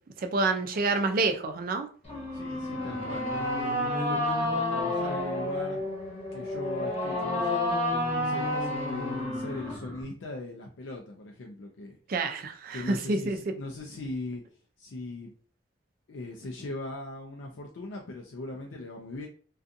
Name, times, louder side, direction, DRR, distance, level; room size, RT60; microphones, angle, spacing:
voice 1, 0.2-1.9 4.2-4.4 12.1-13.4, right 3 dB, 50° right, 0.4 m, -28 dB
sound 1, 2.0-10.0, left 1 dB, 35° left, 0.8 m, -30 dB
voice 2, 2.3-3.3 3.6-5.8 6.3-12.0 12.7-14.4 14.8-15.3 16.1-19.3, left 2 dB, 80° left, 0.4 m, -40 dB
2.5 x 2.3 x 2.6 m
head